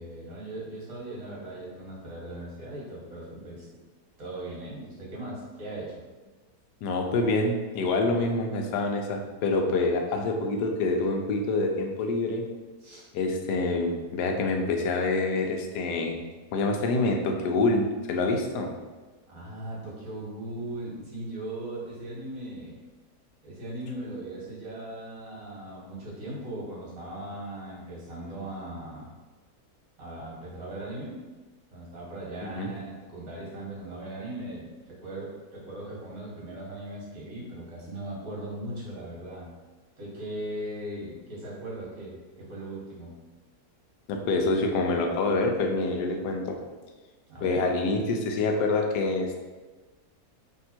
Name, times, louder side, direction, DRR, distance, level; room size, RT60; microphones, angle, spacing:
voice 1, 0.0-3.7 4.2-6.0 12.8-13.0 19.3-22.8 23.4-29.1 30.0-31.2 31.7-39.5 40.0-43.1 47.3-47.7, right 1 dB, 55° right, -5 dB, 1.8 m, -38 dB
voice 2, 6.8-12.4 13.1-16.2 16.5-18.7 32.4-32.7 44.1-46.6 47.4-49.4, left 3 dB, 85° left, 3 dB, 1.2 m, -26 dB
3.6 x 2.9 x 4.3 m, 1.3 s
omnidirectional pair, 1.8 m